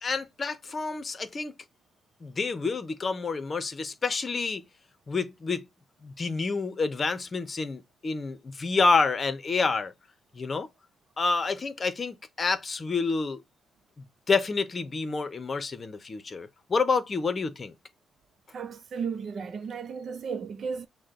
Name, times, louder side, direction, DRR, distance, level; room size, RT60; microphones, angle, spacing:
voice 1, 0.0-1.5 2.2-4.6 5.1-5.6 6.0-9.9 10.3-10.7 11.2-13.4 14.0-17.7, left 4 dB, 35° left, 0.9 m, -28 dB
voice 2, 18.5-20.9, right 6 dB, 55° right, 0.6 m, -34 dB
6.3 x 2.2 x 3.7 m
cardioid pair, 90°, 0 cm